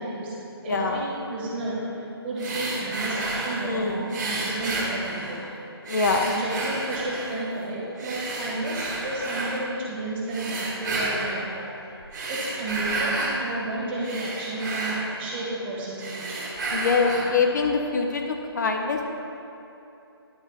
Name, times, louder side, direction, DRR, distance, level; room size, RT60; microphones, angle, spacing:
voice 1, 0.0-5.5 6.1-11.8 12.3-16.4, right 2 dB, 25° right, -5 dB, 1.5 m, -32 dB
voice 2, 0.7-1.0 3.7-4.0 5.9-6.3 16.7-19.0, left 4 dB, 45° left, 3 dB, 0.6 m, -24 dB
sound 1, 2.4-3.7 4.1-5.5 5.9-7.4 8.0-9.6 10.3-11.4 12.0-13.4 13.8-15.6 15.9-17.4, right 2 dB, 40° right, 1.8 m, -31 dB
10.0 x 4.0 x 5.5 m, 2.9 s
figure-of-eight pair, 155°, 14 cm